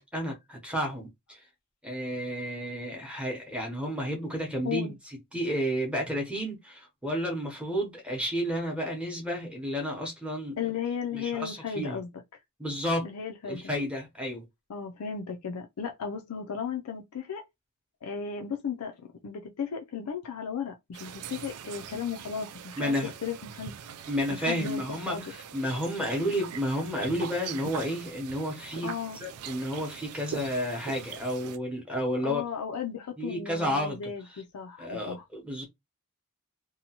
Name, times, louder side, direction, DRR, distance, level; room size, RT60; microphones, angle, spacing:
voice 1, 0.0-1.4 1.8-10.7 11.1-12.0 12.6-13.1 13.4-14.5 22.8-23.1 24.1-28.9 29.2-32.4 33.2-34.0 34.3-34.4 34.8-35.6, equal, 5° right, 0.7 m, -31 dB
voice 2, 10.6-12.1 13.0-13.7 14.7-17.4 18.0-23.0 23.2-23.7 24.4-25.3 28.8-29.2 32.2-35.2, left 6 dB, 90° left, 0.4 m, -35 dB
sound 1, 20.9-31.6, right 8 dB, 85° right, 0.4 m, -42 dB
2.8 x 2.2 x 2.8 m
head